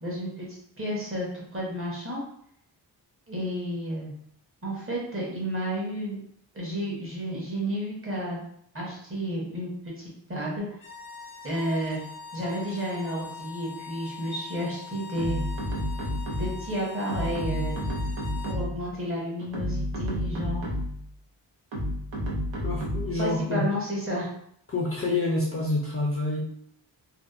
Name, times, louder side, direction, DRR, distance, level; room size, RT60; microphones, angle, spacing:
voice 1, 0.0-2.2 3.3-4.1 4.6-6.2 6.5-8.4 8.7-10.7 11.4-12.0 12.3-15.4 16.3-17.8 18.4-20.6 23.2-24.3, equal, 30° right, -4 dB, 0.8 m, -31 dB
sound 1, 10.7-18.6, left 5 dB, 80° left, 0.6 m, -42 dB
sound 2, 15.2-16.7 17.1-18.9 19.4-21.1 21.7-23.2, equal, 90° right, 0.6 m, -30 dB
voice 2, 22.6-23.6 24.7-26.4, left 2 dB, 35° left, -3 dB, 0.4 m, -27 dB
2.7 x 2.1 x 2.3 m, 0.69 s
wide cardioid pair, 145°, 43 cm